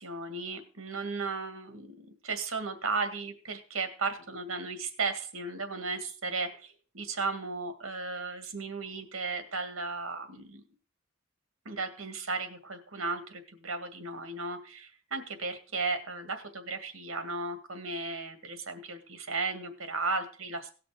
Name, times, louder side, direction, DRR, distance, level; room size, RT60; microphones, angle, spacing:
voice 1, 0.0-2.0 2.2-10.6 11.7-20.7, right 3 dB, 80° right, 8 dB, 1.9 m, -35 dB
17.5 x 6.0 x 4.9 m, 0.39 s
head